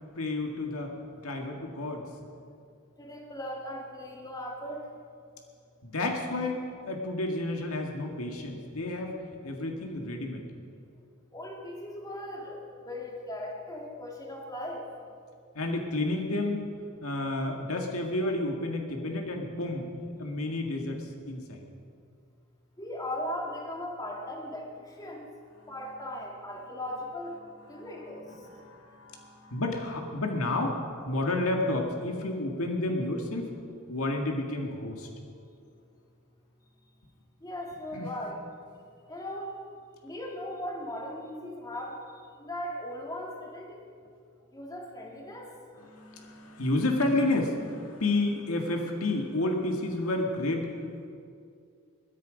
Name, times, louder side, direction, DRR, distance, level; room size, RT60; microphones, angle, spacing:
voice 1, 0.1-0.9 1.2-2.1 5.8-9.2 9.4-10.4 15.5-16.6 17.0-19.9 20.2-21.6 25.6-25.7 27.7-27.9 28.3-30.8 31.1-33.5 33.9-35.1 37.9-38.1 45.8-51.0, left 2 dB, 75° left, 2 dB, 1.9 m, -31 dB
voice 2, 3.0-4.8 11.3-14.8 22.8-25.3 25.7-27.4 27.7-28.2 37.4-38.4 39.1-39.5 40.0-42.0 42.4-43.9 44.5-45.5, left 1 dB, 15° left, 0 dB, 2.0 m, -38 dB
21.5 x 10.5 x 5.2 m, 2.4 s
head